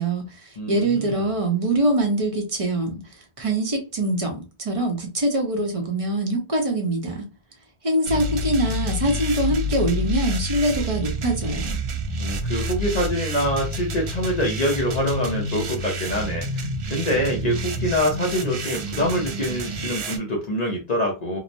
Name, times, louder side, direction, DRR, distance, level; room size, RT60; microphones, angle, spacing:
voice 1, 0.0-7.2 7.8-11.8, right 1 dB, 35° right, 0.7 m, -24 dB
voice 2, 0.6-1.3 12.2-21.4, equal, 45° left, 0.6 m, -25 dB
sound 1, 8.0-20.2, equal, 80° right, 0.9 m, -28 dB
2.9 x 2.0 x 2.6 m
omnidirectional pair, 1.1 m